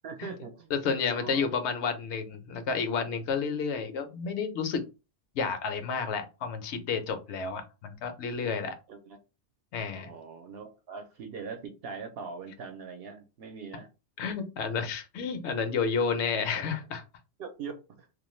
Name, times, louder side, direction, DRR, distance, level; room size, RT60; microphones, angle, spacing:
voice 1, 0.0-0.7 1.1-1.5 8.9-9.2 10.0-13.9 17.4-18.1, right 5 dB, 65° right, 5 dB, 0.8 m, -42 dB
voice 2, 0.7-4.8 5.3-8.8 9.7-10.1 14.2-17.0, left 5 dB, 80° left, 7 dB, 0.9 m, -31 dB
2.4 x 2.2 x 3.0 m, 0.29 s
omnidirectional pair, 1.2 m